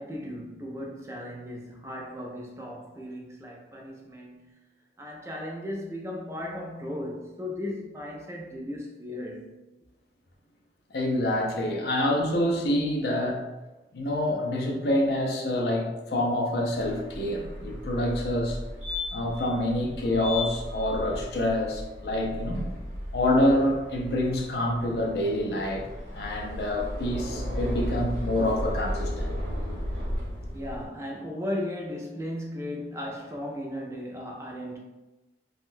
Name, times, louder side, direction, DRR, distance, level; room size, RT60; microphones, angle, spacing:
voice 1, 0.0-4.6 5.0-9.5 30.5-34.8, left 1 dB, 15° right, -1 dB, 0.3 m, -36 dB
voice 2, 10.9-13.4 13.9-18.6 19.1-22.6 23.1-25.9 26.1-29.3, left 1 dB, 60° left, 0 dB, 0.5 m, -27 dB
sound 1, 16.7-30.8, left 1 dB, 75° right, 0.9 m, -35 dB
3.5 x 2.2 x 2.5 m, 1.1 s
head